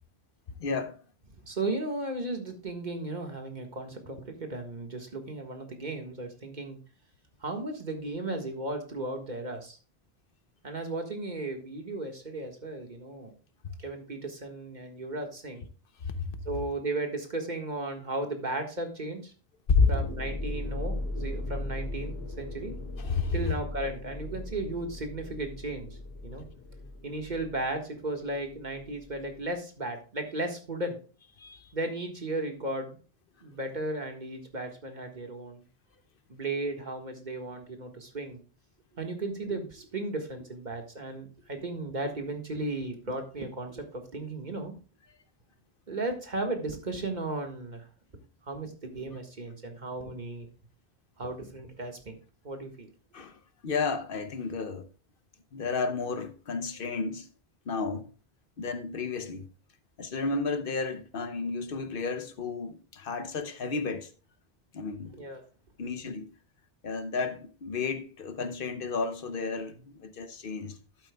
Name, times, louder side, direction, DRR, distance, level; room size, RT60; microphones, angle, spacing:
voice 1, 0.6-1.0 16.0-16.4 19.7-19.9 23.0-23.5 31.4-31.7 53.1-54.9 55.5-57.3 57.7-58.1 58.6-59.5 60.0-64.1 64.7-65.1 65.8-66.3 66.8-70.8, left 4 dB, 60° left, 0.9 m, -31 dB
voice 2, 1.5-6.8 7.4-9.8 10.6-13.3 13.8-15.7 16.4-19.3 19.9-22.7 23.3-25.9 26.2-26.4 27.0-31.0 31.7-33.0 33.4-35.6 36.3-38.4 38.9-44.7 45.9-47.8 48.5-50.5 51.2-52.1 52.4-52.9 65.1-65.4, right 2 dB, 45° right, 1.7 m, -35 dB
sound 1, 19.8-29.6, left 1 dB, 80° left, 3.7 m, -38 dB
11.5 x 8.8 x 2.2 m
omnidirectional pair, 1.0 m